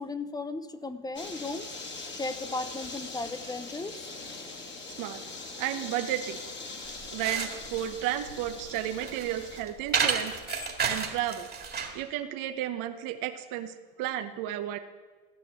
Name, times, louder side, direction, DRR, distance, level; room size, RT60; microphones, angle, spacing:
voice 1, 0.0-1.7 2.1-4.1, left 3 dB, 10° left, 12 dB, 0.6 m, -36 dB
sound 1, 1.2-9.6, left 3 dB, 30° left, 2.0 m, -41 dB
voice 2, 5.6-6.4 7.1-10.3 10.8-11.5 11.9-14.8, right 12 dB, 60° right, 7 dB, 1.0 m, -33 dB
sound 2, 6.8-12.0, right 6 dB, 25° right, 2.0 m, -32 dB
Bicycle bell, 8.1-9.8 10.2-11.8 12.5-12.7, left 10 dB, 60° left, 2.1 m, -50 dB
14.0 x 5.9 x 9.0 m, 1.4 s
supercardioid pair, 110°, 38 cm